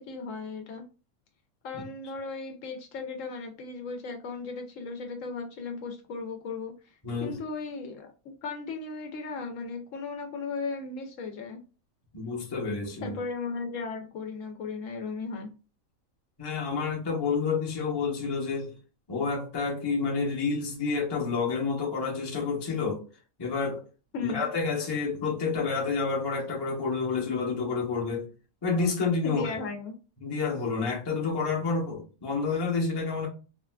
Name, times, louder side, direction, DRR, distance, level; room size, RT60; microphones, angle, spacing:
voice 1, 0.1-0.8 1.6-6.7 7.2-8.1 8.4-11.6 13.0-15.5 24.1-24.4 29.2-29.9, left 4 dB, 70° left, 0.9 m, -36 dB
voice 2, 7.0-7.4 12.1-13.2 16.4-18.7 19.1-23.0 23.4-23.8 24.2-28.3 28.6-29.4 30.2-33.3, left 4 dB, 25° left, 0.6 m, -29 dB
3.5 x 2.3 x 2.2 m
omnidirectional pair, 1.4 m